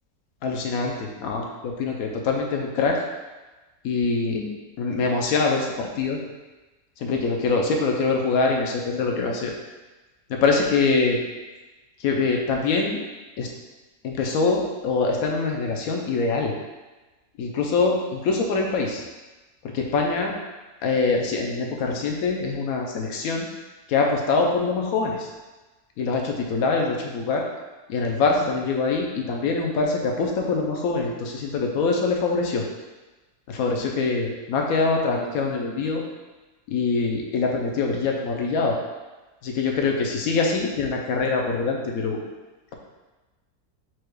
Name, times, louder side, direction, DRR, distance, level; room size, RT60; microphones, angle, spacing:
voice 1, 0.4-3.0 3.8-4.5 4.8-6.2 7.0-9.5 10.3-11.2 12.0-13.0 13.4-13.5 14.0-16.5 17.4-19.0 19.7-20.4 20.8-23.5 23.9-25.3 26.0-27.4 27.9-32.6 33.5-36.0 36.7-38.8 39.4-42.2, left 4 dB, 70° left, 1 dB, 1.1 m, -24 dB
4.5 x 2.3 x 4.7 m, 1.2 s
omnidirectional pair, 1.7 m